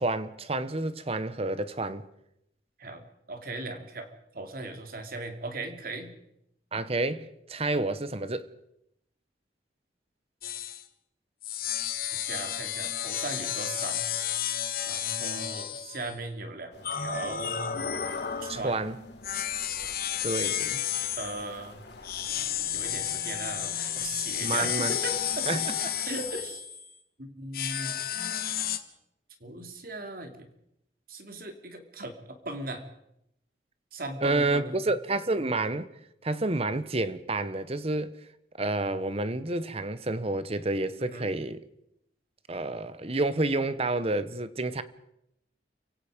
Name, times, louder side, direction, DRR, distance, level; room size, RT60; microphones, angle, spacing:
voice 1, 0.0-2.0 6.7-8.5 18.5-19.0 20.2-20.8 24.4-25.0 25.5-25.9 34.2-35.9 36.2-38.1 38.6-41.6 42.5-44.8, right 2 dB, 35° right, 1.1 m, -29 dB
voice 2, 3.3-4.1 4.3-6.1 12.1-14.0 14.9-17.7 18.4-18.8 21.2-21.8 22.7-25.6 26.0-26.6 27.2-27.9 29.4-30.5 31.1-32.8 33.9-34.8 41.0-41.3, right 2 dB, 55° right, 3.0 m, -38 dB
sound 1, 10.4-10.8 11.4-16.2 16.8-18.7 19.2-21.5 22.0-26.9 27.5-28.8, left 10 dB, 55° left, 1.5 m, -32 dB
sound 2, 16.7-26.4, left 2 dB, 70° left, 3.6 m, -49 dB
30.0 x 17.0 x 5.2 m
head